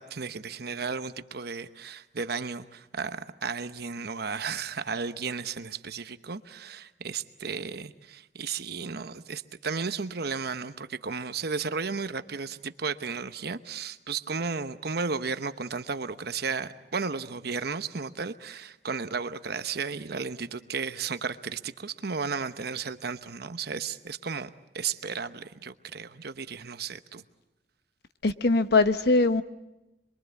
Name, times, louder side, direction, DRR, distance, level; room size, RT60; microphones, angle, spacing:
voice 1, 0.0-24.5 24.7-27.2, right 5 dB, 60° right, 1.0 m, -34 dB
voice 2, 28.2-29.4, left 3 dB, 65° left, 1.0 m, -21 dB
26.5 x 22.5 x 8.3 m
head